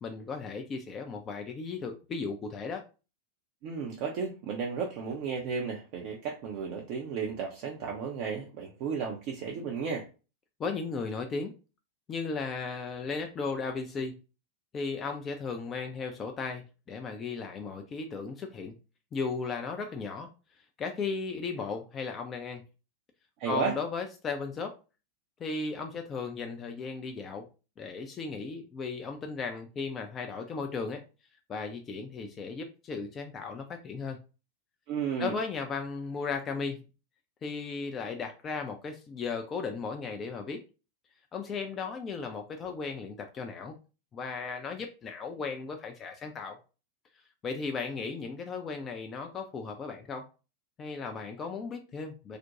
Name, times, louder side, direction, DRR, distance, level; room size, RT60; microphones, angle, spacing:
voice 1, 0.0-2.8 10.6-11.5 12.1-14.2 14.7-18.7 19.1-20.3 20.8-22.6 23.5-24.8 25.4-27.5 27.8-31.0 31.5-34.2 35.2-36.8 37.4-40.6 41.3-43.7 44.1-46.6 47.4-50.3 50.8-52.4, left 4 dB, 25° left, 4 dB, 0.4 m, -36 dB
voice 2, 3.6-10.1 23.4-23.7 34.9-35.3, right 6 dB, 45° right, -1 dB, 0.5 m, -33 dB
2.4 x 2.1 x 2.8 m, 0.32 s
figure-of-eight pair, 90°, 0 cm